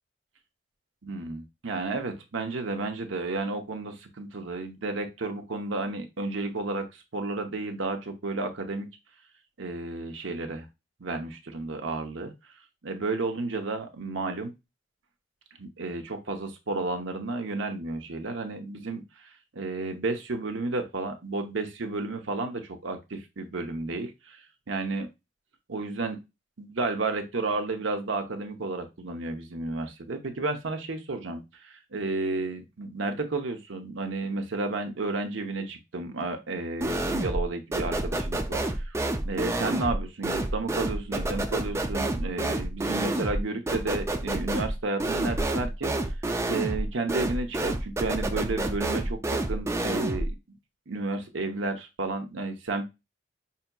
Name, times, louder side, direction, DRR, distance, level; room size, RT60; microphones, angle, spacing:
voice 1, 1.0-8.9 9.6-10.7 11.0-12.3 12.8-14.5 15.6-25.1 25.7-26.2 26.6-39.0 39.2-45.9 46.4-50.3 50.9-52.9, right 3 dB, 75° right, 6 dB, 0.8 m, -32 dB
sound 1, 36.8-37.5 37.7-50.3, right 1 dB, 15° right, 0.3 m, -29 dB
5.6 x 2.8 x 2.3 m, 0.23 s
head